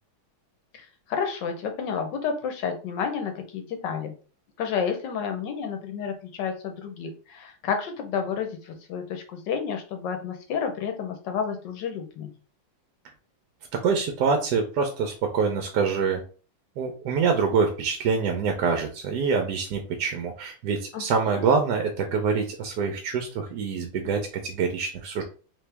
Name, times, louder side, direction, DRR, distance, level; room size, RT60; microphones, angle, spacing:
voice 1, 0.7-4.1 4.6-12.3 20.9-21.0 21.3-21.4, left 6 dB, 70° left, 6 dB, 1.3 m, -30 dB
voice 2, 13.8-16.2 16.8-25.2, right 5 dB, 70° right, 4 dB, 1.0 m, -25 dB
3.5 x 3.0 x 3.3 m, 0.37 s
omnidirectional pair, 2.2 m